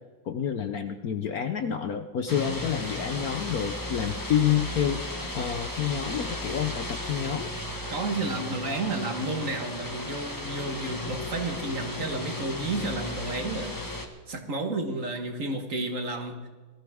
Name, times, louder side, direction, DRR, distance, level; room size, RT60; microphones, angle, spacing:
voice 1, 0.2-5.0 5.3-7.5, left 9 dB, 60° left, 8 dB, 1.1 m, -28 dB
sound 1, 2.3-14.1, left 1 dB, 10° left, 1.2 m, -35 dB
voice 2, 7.9-13.8 14.3-16.5, right 2 dB, 45° right, 5 dB, 1.7 m, -31 dB
21.0 x 14.5 x 3.6 m, 1.4 s
omnidirectional pair, 2.1 m